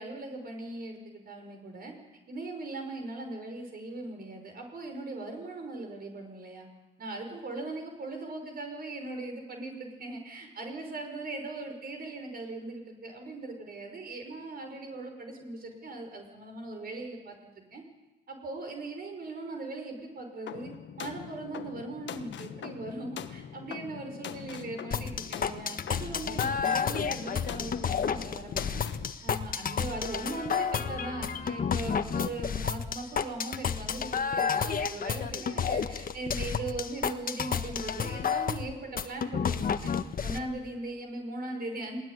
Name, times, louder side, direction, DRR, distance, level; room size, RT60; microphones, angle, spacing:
voice 1, 0.0-1.9 2.3-6.7 7.0-17.4 17.7-17.8 18.3-20.7 21.0-28.8 29.2-39.9 40.2-42.0, right 2 dB, 50° right, 3 dB, 5.5 m, -39 dB
sound 1, 20.5-29.1, left 9 dB, 65° left, 1.4 m, -42 dB
sound 2, 24.9-40.4, left 7 dB, 45° left, 1.5 m, -31 dB
21.0 x 20.0 x 9.8 m, 1.1 s
cardioid pair, 90°, 20 cm